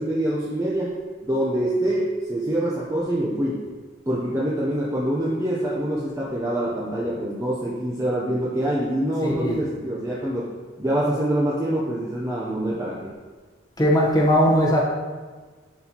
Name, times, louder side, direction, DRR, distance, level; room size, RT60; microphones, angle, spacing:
voice 1, 0.0-3.7 4.1-10.5 10.8-13.1, right 1 dB, 15° right, -6 dB, 0.6 m, -25 dB
voice 2, 9.2-9.6 13.8-14.8, equal, 20° left, -4 dB, 1.0 m, -19 dB
10.5 x 4.3 x 2.9 m, 1.4 s
head